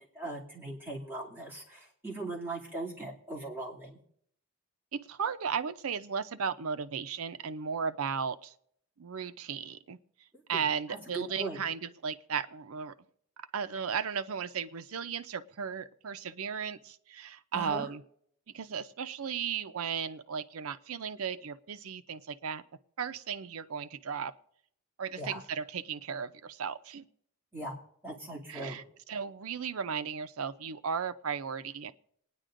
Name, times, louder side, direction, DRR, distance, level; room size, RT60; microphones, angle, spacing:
voice 1, 0.0-4.0 10.5-10.6 10.9-11.6 17.5-17.9 25.2-25.4 27.5-27.7 28.0-28.8, right 2 dB, 10° right, -6 dB, 2.5 m, -39 dB
voice 2, 4.9-8.5 9.0-10.0 10.5-12.9 13.4-18.0 18.5-22.6 23.0-24.3 25.0-27.0 28.5-31.9, right 6 dB, 75° right, 12 dB, 0.6 m, -35 dB
27.5 x 9.9 x 2.6 m, 0.68 s
head